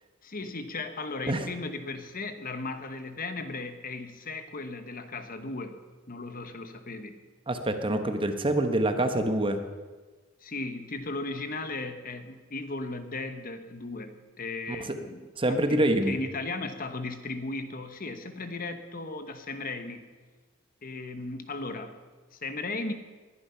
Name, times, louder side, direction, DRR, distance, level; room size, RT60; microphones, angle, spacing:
voice 1, 0.2-5.8 6.1-7.2 10.4-20.1 20.8-22.0 22.3-22.9, left 3 dB, 45° left, 8 dB, 1.2 m, -36 dB
voice 2, 7.5-9.6 15.4-16.1, right 1 dB, 25° right, 7 dB, 1.2 m, -25 dB
20.5 x 11.0 x 5.7 m, 1.3 s
head